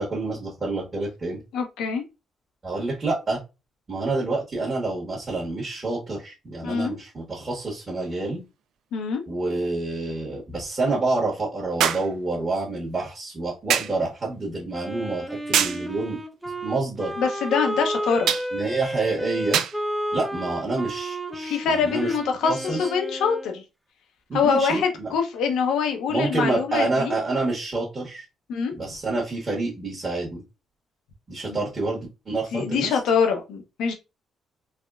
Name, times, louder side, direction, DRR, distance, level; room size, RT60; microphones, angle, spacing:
voice 1, 0.0-1.4 2.6-3.4 3.9-8.4 9.3-16.2 16.6-17.1 18.5-19.6 20.1-22.1 22.5-22.9 24.3-25.1 26.1-28.2 28.7-30.4 31.3-33.0, right 3 dB, 35° right, 1.1 m, -28 dB
voice 2, 1.5-2.0 6.6-6.9 8.9-9.2 17.2-18.3 21.4-23.6 24.3-27.1 28.5-28.7 31.5-31.6 32.5-33.9, left 6 dB, 85° left, 0.7 m, -24 dB
sound 1, 8.0-8.1 11.8-12.1 13.7-14.0 15.5-15.9 18.3-18.5 19.5-19.8 20.9-21.0, right 9 dB, 80° right, 0.3 m, -23 dB
Wind instrument woodwind instrument, 14.7-23.6, right 1 dB, 5° right, 0.5 m, -31 dB
3.4 x 2.2 x 2.3 m
cardioid pair, 90°, 0 cm